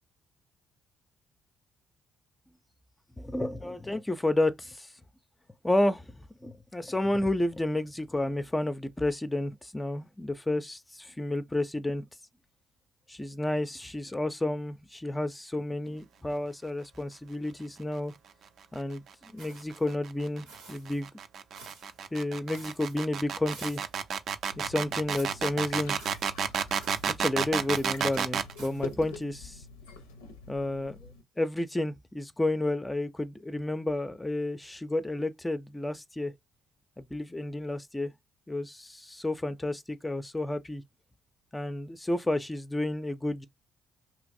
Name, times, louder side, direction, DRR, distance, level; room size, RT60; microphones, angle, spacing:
voice 1, 3.2-4.9 5.6-12.1 13.1-18.1 18.7-21.1 22.1-23.8 24.6-26.0 27.1-29.6 30.5-36.3 37.0-38.1 38.5-40.8 41.5-43.5, left 1 dB, 15° left, 0.4 m, -31 dB
sound 1, 19.3-28.5, right 7 dB, 60° right, 0.4 m, -31 dB
sound 2, 19.4-19.9 20.4-21.0 21.5-22.0 22.5-23.0 23.5-24.0 25.1-25.5 26.0-26.3 26.8-27.2 27.7-28.0 28.6-28.9, right 3 dB, 85° right, 0.8 m, -50 dB
sound 3, 24.5-31.2, left 4 dB, 85° left, 0.5 m, -46 dB
2.8 x 2.5 x 2.5 m
hypercardioid pair, 50°, 0 cm